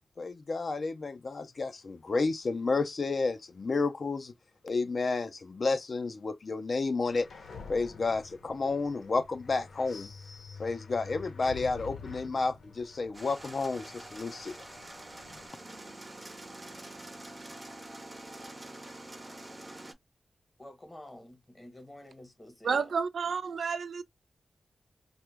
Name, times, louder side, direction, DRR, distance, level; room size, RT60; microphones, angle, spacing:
voice 1, 0.2-4.3 4.6-7.3 7.7-10.1 10.6-14.6, left 3 dB, 45° left, 0.4 m, -31 dB
sound 1, 7.0-15.5, left 5 dB, 90° left, 0.7 m, -48 dB
sound 2, 13.1-19.9, right 1 dB, 20° right, 0.5 m, -46 dB
voice 2, 20.6-22.9, left 1 dB, 15° left, 0.8 m, -49 dB
voice 3, 22.6-24.0, right 5 dB, 75° right, 0.3 m, -30 dB
2.9 x 2.1 x 3.3 m
wide cardioid pair, 180°, 0 cm